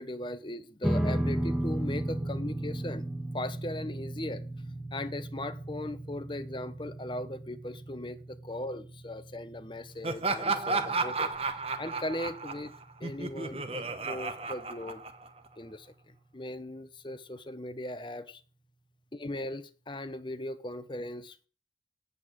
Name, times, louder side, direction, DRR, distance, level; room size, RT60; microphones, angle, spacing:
voice 1, 0.0-3.0 3.3-4.4 4.9-11.3 11.8-12.7 13.0-15.0 15.6-18.4 19.1-21.5, left 1 dB, 25° left, 0.9 m, -38 dB
sound 1, 0.8-13.4, right 1 dB, ahead, 1.0 m, -36 dB
Laughter, 10.0-15.5, right 3 dB, 35° right, 1.1 m, -33 dB
8.6 x 8.2 x 9.2 m
head